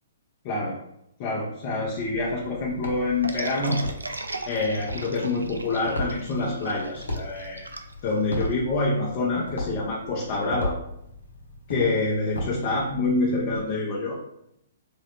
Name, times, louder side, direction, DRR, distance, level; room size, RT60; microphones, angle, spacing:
voice 1, 0.4-0.8 1.2-3.8 4.5-7.7 8.0-10.8 11.7-14.1, left 2 dB, 40° left, -4 dB, 0.6 m, -26 dB
sound 1, 1.8-13.6, left 1 dB, 85° left, 0.8 m, -37 dB
sound 2, 3.2-8.6, right 2 dB, 90° right, 0.3 m, -36 dB
3.7 x 2.1 x 2.9 m, 0.77 s
hypercardioid pair, 125°, 0 cm